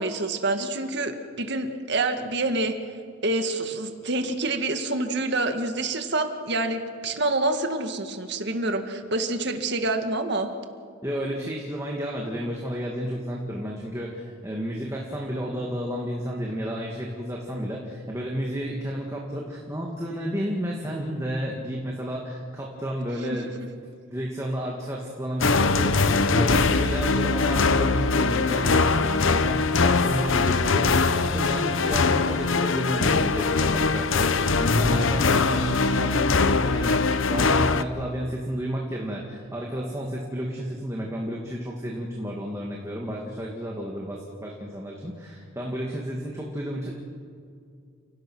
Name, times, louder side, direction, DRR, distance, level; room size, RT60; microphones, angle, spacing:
voice 1, 0.0-2.7 3.2-10.5, right 2 dB, 50° right, 6 dB, 1.8 m, -27 dB
voice 2, 11.0-23.5 24.1-47.0, equal, 15° right, -2 dB, 2.1 m, -31 dB
sound 1, 25.4-37.8, left 4 dB, 65° left, 0.8 m, -22 dB
30.0 x 17.5 x 6.3 m, 2.3 s
head